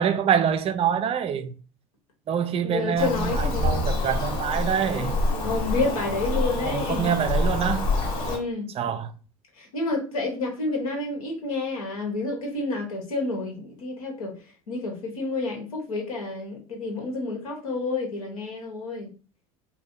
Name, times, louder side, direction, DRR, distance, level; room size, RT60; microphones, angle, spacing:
voice 1, 0.0-1.5 2.3-5.2 6.6-7.9 8.8-9.1, right 8 dB, 35° right, 0.4 m, -25 dB
voice 2, 2.6-4.0 5.4-7.1 8.3-8.7 9.6-14.3 14.7-19.1, left 3 dB, 80° left, 1.2 m, -29 dB
Bird vocalization bird call bird song, 3.0-8.4, left 2 dB, 60° left, 1.3 m, -26 dB
2.6 x 2.2 x 3.7 m
hypercardioid pair, 80°, 18 cm